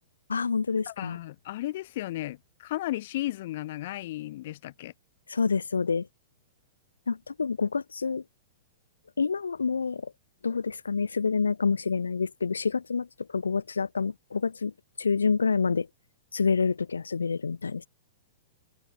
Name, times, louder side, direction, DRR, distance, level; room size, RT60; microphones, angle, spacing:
voice 1, 0.3-1.2 5.3-6.1 7.1-8.2 9.2-10.1 10.4-13.1 13.3-14.7 15.0-15.9 16.3-17.9, left 5 dB, 85° left, 0.4 m, -27 dB
voice 2, 0.9-4.9, left 15 dB, 55° left, 2.3 m, -34 dB
hypercardioid pair, 110°, 0 cm